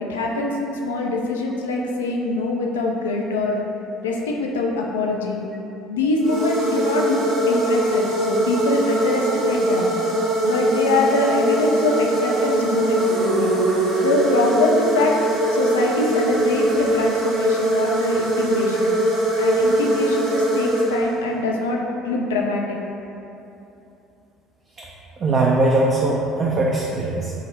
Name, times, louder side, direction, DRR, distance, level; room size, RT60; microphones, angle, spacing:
voice 1, 0.0-3.6 4.0-5.4 5.9-9.9 10.4-13.6 14.0-15.2 15.5-18.9 19.4-22.8, left 2 dB, 85° left, 0 dB, 0.3 m, -23 dB
sound 1, 6.2-21.4, right 1 dB, 70° right, 0.9 m, -21 dB
voice 2, 25.2-27.3, right 2 dB, 40° right, -3 dB, 0.4 m, -20 dB
3.9 x 2.0 x 3.9 m, 2.8 s
hypercardioid pair, 60°, 0 cm